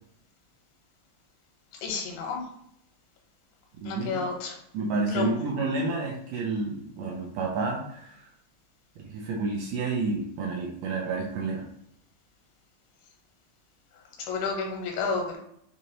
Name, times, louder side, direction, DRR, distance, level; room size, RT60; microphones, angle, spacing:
voice 1, 1.8-2.4 3.8-4.6 5.1-5.3 14.2-15.4, left 4 dB, 85° left, 1 dB, 2.9 m, -30 dB
voice 2, 3.8-4.2 4.7-8.3 9.0-11.7, right 3 dB, 80° right, -1 dB, 2.0 m, -30 dB
6.2 x 2.6 x 2.8 m, 0.71 s
omnidirectional pair, 4.3 m